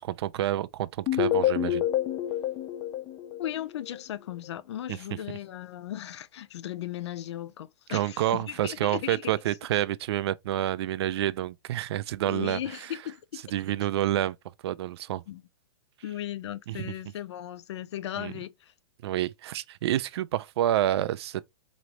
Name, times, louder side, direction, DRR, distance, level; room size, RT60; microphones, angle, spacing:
voice 1, 0.0-1.8 4.9-5.0 7.9-12.6 13.5-14.4 14.6-15.2 16.7-16.9 18.2-18.3 19.0-21.5, right 13 dB, 65° right, 0.5 m, -28 dB
sound 1, 1.1-4.0, left 11 dB, 25° left, 0.4 m, -28 dB
voice 2, 3.4-9.3 12.3-13.4 15.3-15.4 16.0-18.7, left 12 dB, 75° left, 0.6 m, -37 dB
3.9 x 3.1 x 3.1 m
supercardioid pair, 155°, 15 cm